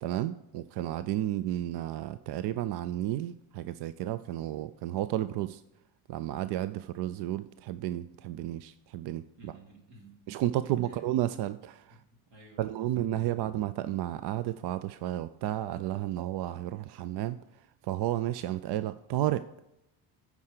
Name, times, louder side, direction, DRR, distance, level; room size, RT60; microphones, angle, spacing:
voice 1, 0.0-5.6 6.1-9.5 10.3-12.0 12.6-17.4 17.8-19.5, right 13 dB, 55° right, 14 dB, 0.5 m, -32 dB
voice 2, 9.4-10.1 10.6-11.0 11.9-13.0, right 2 dB, 75° right, 0 dB, 2.6 m, -54 dB
9.3 x 4.8 x 6.6 m, 0.87 s
hypercardioid pair, 55°, 48 cm